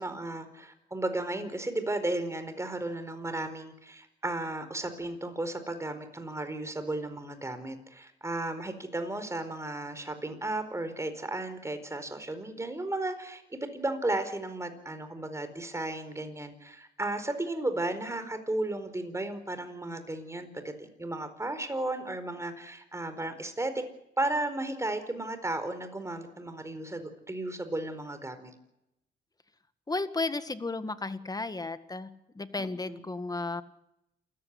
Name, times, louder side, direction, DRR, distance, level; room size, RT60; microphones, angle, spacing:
voice 1, 0.0-23.8 24.2-28.5 32.8-33.0, right 2 dB, 15° right, 9 dB, 4.6 m, -34 dB
voice 2, 29.9-33.6, left 3 dB, 20° left, 11 dB, 1.8 m, -34 dB
27.5 x 15.5 x 9.8 m, 0.86 s
cardioid pair, 90°, 20 cm